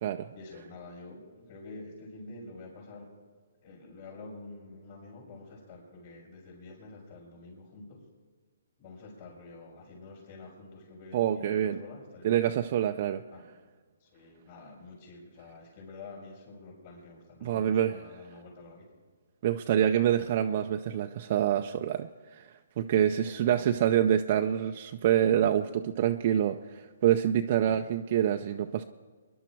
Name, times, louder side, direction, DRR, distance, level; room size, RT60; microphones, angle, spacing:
voice 1, 0.3-3.1 3.6-8.0 8.8-12.4 13.3-13.5 14.0-18.9 23.1-23.9 27.6-27.9, left 3 dB, 40° left, -7 dB, 5.5 m, -48 dB
voice 2, 11.1-11.8 12.2-13.2 17.4-18.0 19.4-28.8, right 10 dB, 40° right, 5 dB, 0.5 m, -26 dB
24.0 x 11.0 x 4.6 m, 1.4 s
hypercardioid pair, 155°, 0 cm